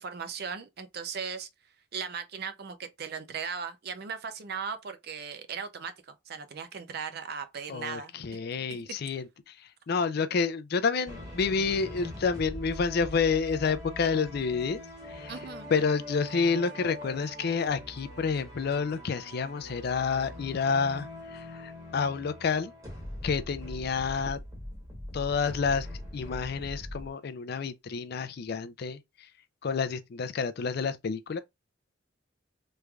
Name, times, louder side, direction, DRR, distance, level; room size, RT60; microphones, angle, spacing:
voice 1, 0.0-1.5 1.9-8.1 8.7-8.9 15.3-15.7, right 6 dB, 50° right, 0.5 m, -38 dB
voice 2, 7.7-9.6 9.9-14.8 15.1-15.3 15.7-22.7 23.2-24.4 25.1-25.9 26.1-29.3 29.6-31.4, left 5 dB, 50° left, 0.4 m, -29 dB
sound 1, 11.1-27.1, left 1 dB, 15° right, 1.2 m, -42 dB
3.4 x 3.2 x 2.3 m
head